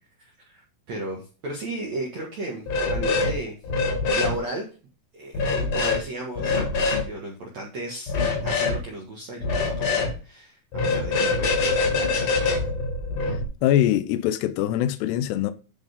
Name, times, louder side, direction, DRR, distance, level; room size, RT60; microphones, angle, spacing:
voice 1, 0.2-3.6 4.1-4.7 5.1-8.1 8.4-12.6, right 2 dB, 85° right, 1.5 m, -35 dB
sound 1, 2.7-3.3 3.6-4.3 5.3-6.0 6.4-7.0 8.1-8.8 9.4-10.1 10.7-13.4, left 3 dB, 45° left, 2.6 m, -24 dB
voice 2, 13.6-15.5, left 12 dB, 90° left, 2.3 m, -22 dB
10.0 x 4.3 x 5.2 m
omnidirectional pair, 5.9 m